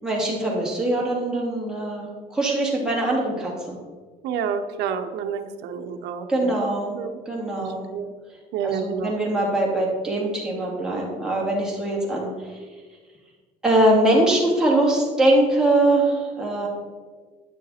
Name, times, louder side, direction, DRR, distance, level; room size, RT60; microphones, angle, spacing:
voice 1, 0.0-3.8 6.3-7.0 7.3-7.9 8.6-12.6 13.6-16.7, right 1 dB, 5° right, -4 dB, 2.7 m, -22 dB
voice 2, 4.2-6.6 6.9-7.2 7.6-8.1 8.5-9.1, right 7 dB, 80° right, 7 dB, 0.8 m, -29 dB
10.0 x 6.5 x 4.3 m, 1.5 s
cardioid pair, 110°, 17 cm